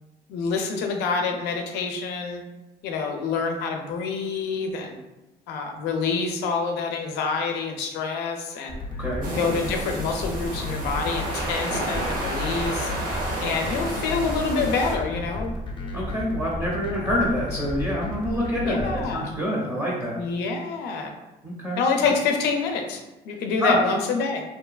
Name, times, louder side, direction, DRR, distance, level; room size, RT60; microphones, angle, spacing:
voice 1, 0.3-2.4 2.8-5.0 5.5-8.8 9.3-12.9 13.4-15.5 18.6-19.3 20.2-21.1 21.8-24.4, left 4 dB, 85° left, 3 dB, 0.4 m, -27 dB
sound 1, 8.7-19.2, left 2 dB, 30° left, 0.5 m, -33 dB
voice 2, 9.0-9.3 15.9-20.2 21.4-21.8 23.6-23.8, equal, 15° right, -5 dB, 0.6 m, -26 dB
sound 2, 9.2-14.9, right 1 dB, 55° right, 0.9 m, -31 dB
2.7 x 2.2 x 2.3 m, 1.0 s
cardioid pair, 110°, 17 cm